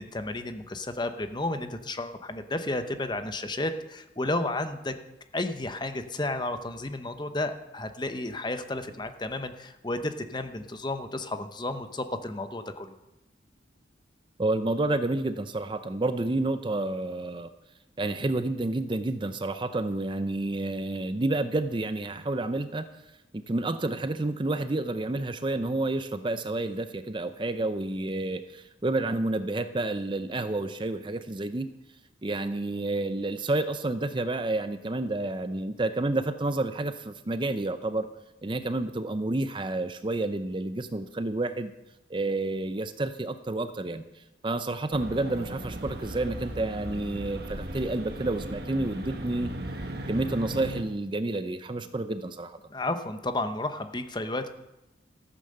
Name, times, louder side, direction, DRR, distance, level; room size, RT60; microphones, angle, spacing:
voice 1, 0.0-4.9 5.3-12.9 52.7-54.5, left 2 dB, 25° left, 9 dB, 0.8 m, -32 dB
voice 2, 14.4-17.5 18.0-22.9 23.3-31.7 32.2-38.1 38.4-41.7 42.1-44.0 44.4-49.5 50.1-52.6, right 2 dB, 25° right, 11 dB, 0.5 m, -29 dB
sound 1, 44.9-50.8, right 1 dB, 55° right, 1.4 m, -37 dB
14.0 x 9.3 x 6.6 m, 0.95 s
head